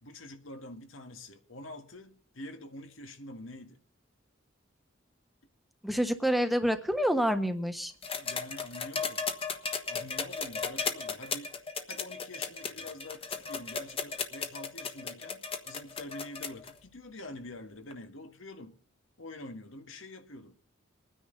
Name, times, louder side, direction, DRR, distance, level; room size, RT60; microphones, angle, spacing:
voice 1, 0.0-3.8 8.2-9.3 9.9-18.8 19.2-20.6, left 1 dB, 90° left, 1.9 m, -46 dB
voice 2, 5.8-7.9, equal, ahead, 1.2 m, -27 dB
sound 1, 8.0-16.7 17.9-18.0, left 5 dB, 30° left, 1.3 m, -35 dB
23.5 x 9.9 x 3.9 m
head